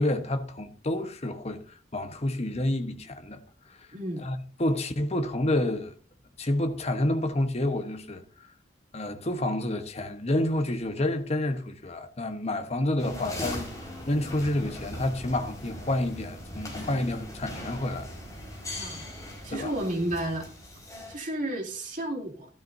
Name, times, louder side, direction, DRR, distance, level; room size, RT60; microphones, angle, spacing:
voice 1, 0.0-3.4 3.7-3.8 4.2-5.9 6.4-8.5 8.9-13.7 14.1-18.1 19.5-19.7, left 1 dB, 35° left, 1.1 m, -29 dB
voice 2, 3.9-4.2 18.8-19.1 19.4-20.5 21.1-22.5, right 1 dB, 45° right, 2.7 m, -32 dB
sound 1, 13.0-21.2, left 1 dB, 20° left, 4.5 m, -40 dB
13.5 x 12.5 x 2.7 m
head